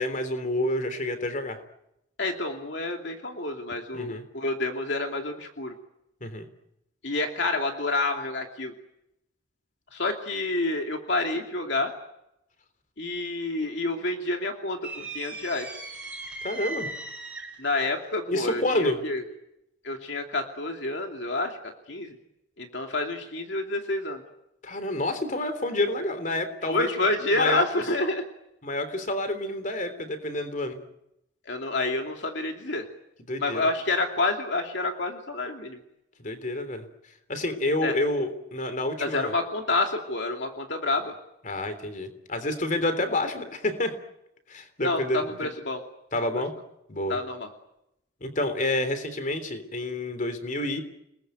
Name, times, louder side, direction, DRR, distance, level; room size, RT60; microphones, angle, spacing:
voice 1, 0.0-1.6 3.9-4.2 6.2-6.5 16.4-16.9 18.3-19.0 24.6-27.1 27.3-27.6 28.6-30.8 33.3-33.6 36.2-36.8 37.3-39.3 41.4-43.9 44.5-45.4 46.1-46.5 46.9-47.2 48.2-50.8, left 1 dB, 40° left, 10 dB, 3.4 m, -28 dB
voice 2, 2.2-5.7 7.0-8.7 9.9-11.9 13.0-15.7 17.6-19.2 19.8-22.2 22.6-24.2 26.7-28.2 31.5-32.9 33.4-35.8 37.8-37.9 39.0-41.1 44.8-45.8 46.2-46.3 47.1-47.5, left 2 dB, 60° left, 3 dB, 2.7 m, -28 dB
sound 1, 14.8-17.7, right 2 dB, 5° right, 4.2 m, -37 dB
30.0 x 20.5 x 9.2 m, 0.84 s
head